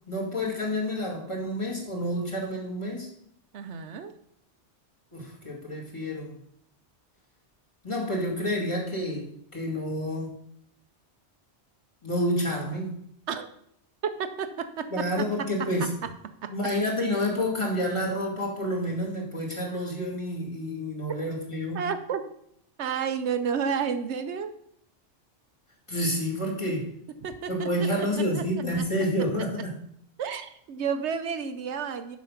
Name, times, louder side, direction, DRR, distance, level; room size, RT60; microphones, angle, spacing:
voice 1, 0.1-3.1 5.1-6.4 7.8-10.3 12.0-13.0 14.9-15.9 16.5-21.9 25.9-26.9 27.5-29.7, equal, 25° left, -2 dB, 2.4 m, -29 dB
voice 2, 3.5-4.1 13.3-13.5 14.0-15.5 15.8-16.1 16.4-16.5 21.7-22.2 22.8-24.5 26.6-26.8 27.2-27.7 28.0-28.1 28.3-28.4 30.2-32.2, right 6 dB, 75° right, 9 dB, 1.0 m, -31 dB
7.2 x 6.0 x 5.7 m, 0.70 s
omnidirectional pair, 1.2 m